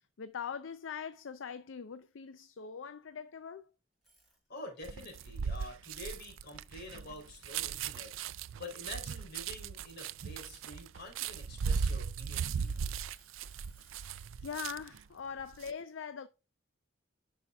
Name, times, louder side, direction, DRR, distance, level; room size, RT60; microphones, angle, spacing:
voice 1, 0.2-3.7 13.9-16.3, left 6 dB, 70° left, 0.5 m, -42 dB
sound 1, 3.9-4.9 5.3-7.2 7.6-7.8 8.3-10.1 10.8-11.9 12.5-14.2, equal, ahead, 4.3 m, -67 dB
voice 2, 4.5-8.2 8.6-12.9 14.4-14.5, left 2 dB, 55° left, 3.5 m, -48 dB
sound 2, 4.8-15.0 15.4-15.7, right 6 dB, 85° right, 0.4 m, -37 dB
10.0 x 5.6 x 2.3 m
head